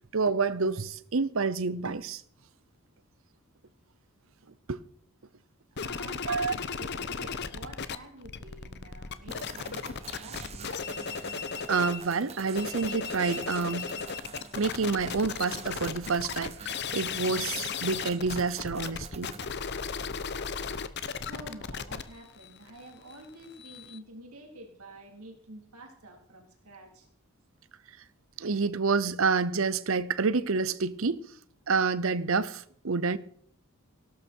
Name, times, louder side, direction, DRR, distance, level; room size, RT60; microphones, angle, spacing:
voice 1, 0.1-2.2 4.7-4.8 6.3-6.5 11.7-13.9 14.6-19.3 28.4-31.2 31.7-33.2, right 4 dB, 65° right, 0.7 m, -28 dB
voice 2, 5.7-10.8 12.4-12.5 21.3-27.1, right 1 dB, 90° right, 3.8 m, -48 dB
sound 1, 5.8-12.0 12.4-24.0, left 6 dB, 50° left, 0.9 m, -36 dB
sound 2, 9.3-19.5, right 4 dB, 30° right, 1.1 m, -46 dB
18.0 x 12.0 x 4.6 m
head